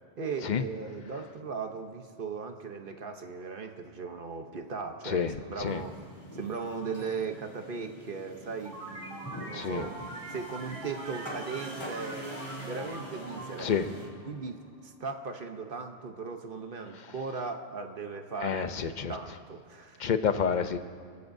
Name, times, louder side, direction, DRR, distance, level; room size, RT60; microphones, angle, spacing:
voice 1, 0.2-6.1 6.4-13.7 14.3-18.7 19.1-20.1, right 4 dB, 50° right, 5 dB, 1.1 m, -38 dB
sound 1, 5.7-14.1, equal, 20° left, 2.4 m, -44 dB
sound 2, 8.6-14.9, right 1 dB, 80° right, 3.0 m, -44 dB
voice 2, 9.5-9.8 13.6-13.9 18.4-19.1 20.0-20.8, left 7 dB, 45° left, 9 dB, 0.7 m, -28 dB
29.5 x 15.0 x 2.7 m, 2.1 s
omnidirectional pair, 1.2 m